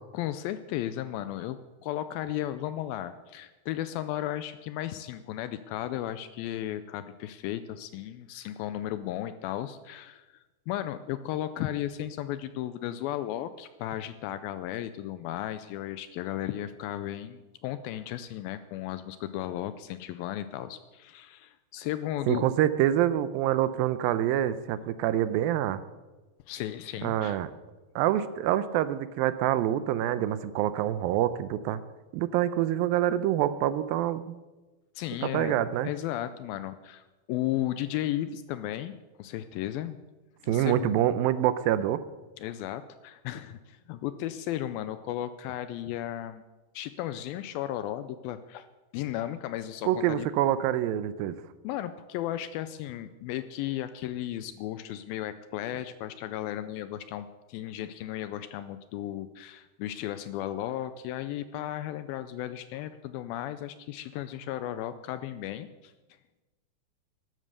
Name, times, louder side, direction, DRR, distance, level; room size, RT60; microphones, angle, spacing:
voice 1, 0.1-10.3 10.7-22.4 26.5-27.4 35.0-35.6 35.8-38.9 39.2-40.0 40.4-40.9 42.4-46.4 46.7-48.7 48.9-50.3 51.6-65.9, left 12 dB, 80° left, 12 dB, 2.2 m, -35 dB
voice 2, 22.3-25.8 27.0-27.5 28.0-31.8 32.1-34.4 35.2-35.9 40.5-42.0 49.9-51.4, right 12 dB, 80° right, 14 dB, 2.2 m, -26 dB
13.0 x 11.0 x 6.7 m, 1.2 s
omnidirectional pair, 4.5 m